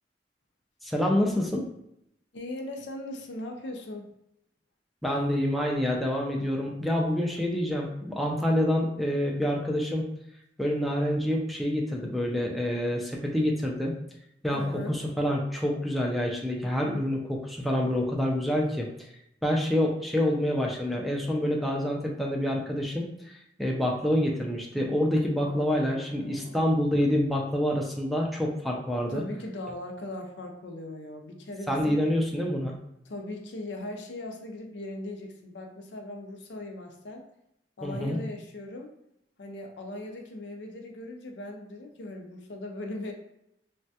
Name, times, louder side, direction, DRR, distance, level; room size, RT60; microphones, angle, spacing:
voice 1, 0.8-1.7 5.0-10.1 10.6-13.9 14.4-18.9 19.4-29.2 31.7-32.8 37.8-38.2, left 1 dB, ahead, -1 dB, 0.4 m, -27 dB
voice 2, 2.3-4.1 14.5-15.0 25.4-26.7 29.1-32.0 33.1-37.3 37.8-38.9 39.4-43.1, left 1 dB, 80° left, 3 dB, 0.5 m, -39 dB
3.2 x 2.2 x 2.7 m, 0.78 s
head